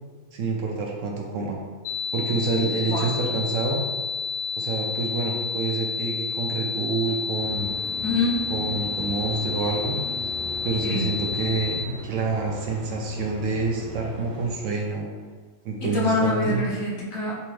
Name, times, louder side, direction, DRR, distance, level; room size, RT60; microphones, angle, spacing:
voice 1, 0.3-1.6 2.1-3.8 4.6-7.7 8.5-10.0 10.6-15.1 15.6-16.6, right 3 dB, 70° right, 0 dB, 0.9 m, -27 dB
sound 1, 1.8-11.8, left 5 dB, 85° left, 1.1 m, -30 dB
sound 2, 7.3-14.5, right 1 dB, 40° right, 1.0 m, -38 dB
voice 2, 8.0-8.4 10.8-11.0 15.8-17.4, left 2 dB, 70° left, -5 dB, 1.3 m, -25 dB
3.4 x 3.4 x 3.2 m, 1.4 s
omnidirectional pair, 1.5 m